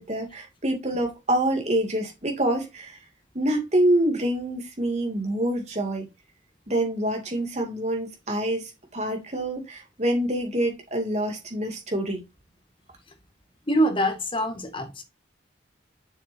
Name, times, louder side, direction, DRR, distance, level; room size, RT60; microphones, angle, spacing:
voice 1, 0.0-2.9 3.3-6.1 6.7-8.6 8.9-12.2, right 1 dB, 35° right, 2.4 m, -26 dB
voice 2, 13.7-15.0, equal, 25° left, 1.5 m, -24 dB
7.2 x 6.7 x 2.7 m
head